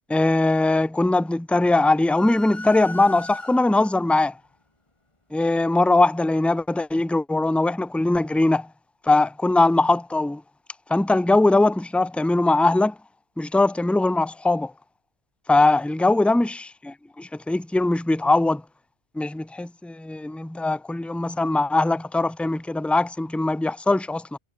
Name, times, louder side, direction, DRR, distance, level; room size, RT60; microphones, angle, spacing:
voice 1, 0.1-4.3 5.3-8.7 9.1-10.4 10.9-12.9 13.4-14.7 15.5-18.6 19.1-24.4, left 2 dB, ahead, 0.9 m, -21 dB
sound 1, 2.1-4.0, left 2 dB, 25° left, 2.3 m, -37 dB
omnidirectional pair, 1.1 m